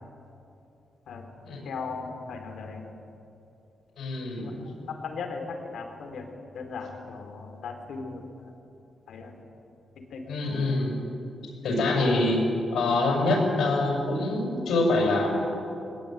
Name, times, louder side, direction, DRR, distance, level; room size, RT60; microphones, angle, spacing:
voice 1, 1.6-2.9 4.4-6.3 6.5-8.3 9.1-9.3 10.0-10.2 10.8-10.9, left 4 dB, 70° left, 4 dB, 3.5 m, -37 dB
voice 2, 4.0-4.4 10.3-10.9 11.4-12.4 12.7-15.5, left 2 dB, 90° left, 0 dB, 7.3 m, -25 dB
21.0 x 21.0 x 9.2 m, 2.8 s
wide cardioid pair, 175°, 0 cm